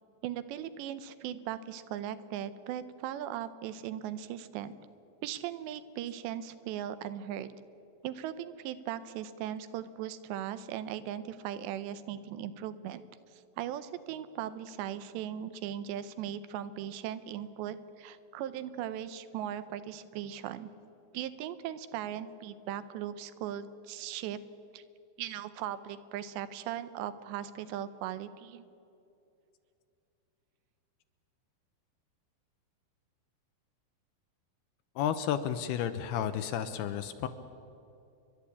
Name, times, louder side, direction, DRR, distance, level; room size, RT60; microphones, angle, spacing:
voice 1, 0.2-4.7 5.2-7.5 8.0-13.0 13.6-20.7 21.1-24.4 24.7-24.8 25.2-28.7, right 10 dB, 85° right, 13 dB, 3.0 m, -38 dB
voice 2, 35.0-37.3, left 9 dB, 80° left, 10 dB, 2.5 m, -32 dB
29.5 x 11.5 x 8.5 m, 2.7 s
omnidirectional pair, 5.0 m